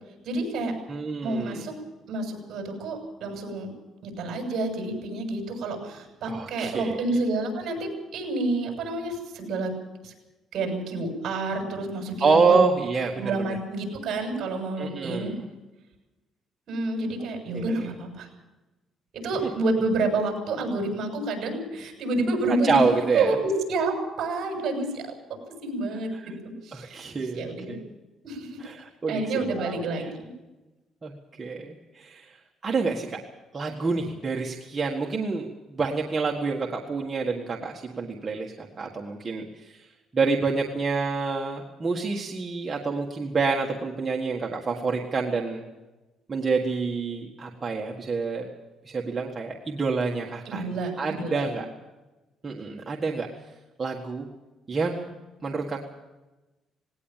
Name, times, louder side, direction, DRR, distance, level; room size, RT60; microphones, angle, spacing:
voice 1, 0.2-0.7 1.2-1.7 2.1-3.7 4.0-9.7 10.0-10.1 10.5-12.5 13.2-15.3 16.7-18.3 19.1-22.8 23.1-25.1 25.6-26.3 26.6-27.1 27.3-27.8 28.2-28.6 29.1-30.3 50.4-51.5, right 2 dB, 50° right, 4 dB, 6.9 m, -29 dB
voice 2, 0.9-1.6 6.3-7.0 12.2-13.3 14.8-15.3 17.5-17.8 19.4-19.5 22.5-23.3 26.1-26.4 26.7-27.9 28.6-30.1 31.0-31.1 31.4-32.4 32.6-33.2 33.5-39.8 40.1-45.6 46.3-48.4 48.8-50.6 51.0-51.7 52.4-53.3 53.8-54.2 54.7-55.1 55.4-55.8, right 4 dB, 20° right, 0 dB, 1.6 m, -27 dB
19.0 x 18.0 x 7.4 m, 1.1 s
cardioid pair, 160°, 0 cm